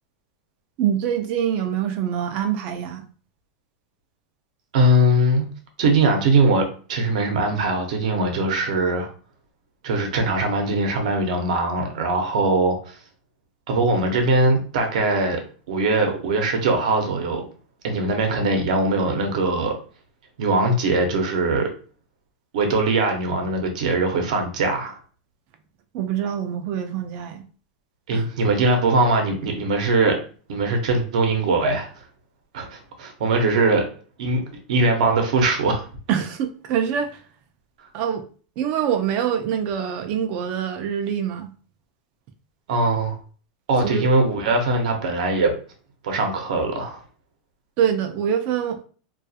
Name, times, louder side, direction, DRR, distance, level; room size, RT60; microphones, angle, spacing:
voice 1, 0.8-3.0 25.9-27.4 28.1-28.3 36.1-37.2 37.9-38.2 38.6-41.5 43.8-44.1 47.8-48.8, right 8 dB, 40° right, 0.3 m, -25 dB
voice 2, 4.7-5.5 5.8-9.1 9.8-13.0 13.7-15.4 15.7-17.4 17.8-19.7 20.4-21.7 22.5-25.0 28.1-30.2 30.5-31.9 32.5-33.8 34.2-34.4 34.7-35.9 42.7-43.2 43.7-45.5 46.0-47.0, right 2 dB, 75° right, 0.7 m, -21 dB
2.3 x 2.3 x 2.6 m
supercardioid pair, 150°, 4 cm